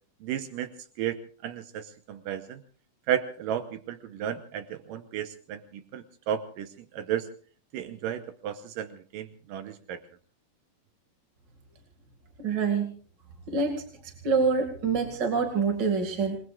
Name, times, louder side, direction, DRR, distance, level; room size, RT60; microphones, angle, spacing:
voice 1, 0.2-0.7 1.0-1.2 1.4-2.6 3.1-7.3 7.7-10.0, right 10 dB, 80° right, 9 dB, 2.6 m, -33 dB
voice 2, 12.4-12.9 13.5-16.4, right 5 dB, 35° right, 3 dB, 2.4 m, -26 dB
28.0 x 21.0 x 2.5 m, 0.43 s
omnidirectional pair, 3.9 m